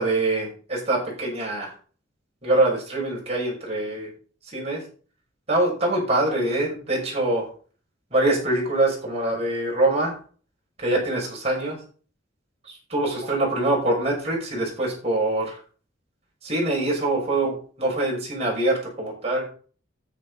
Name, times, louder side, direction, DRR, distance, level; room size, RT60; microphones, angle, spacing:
voice 1, 0.0-1.7 2.4-4.1 4.5-4.8 5.5-7.4 8.1-10.1 10.8-11.8 12.9-15.6 16.4-19.4, right 2 dB, 35° right, -3 dB, 6.0 m, -24 dB
9.8 x 9.3 x 4.0 m, 0.40 s
head